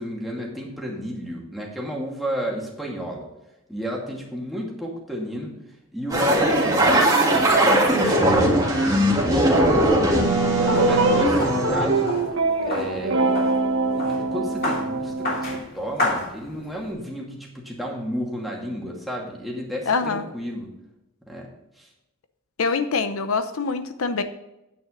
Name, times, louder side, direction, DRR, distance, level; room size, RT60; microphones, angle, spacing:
voice 1, 0.0-3.3 3.7-5.6 5.9-12.1 12.6-13.5 13.9-20.7 21.3-21.5 21.8-21.9, equal, ahead, -3 dB, 2.3 m, -33 dB
sound 1, 6.1-12.2, right 1 dB, 15° right, 1.9 m, -19 dB
sound 2, 9.4-16.9, left 2 dB, 45° left, 3.2 m, -33 dB
sound 3, 10.6-15.6, right 3 dB, 70° right, 1.2 m, -24 dB
voice 2, 19.9-20.2 22.6-24.2, left 4 dB, 75° left, 10 dB, 0.7 m, -24 dB
9.3 x 9.2 x 3.9 m, 0.92 s
head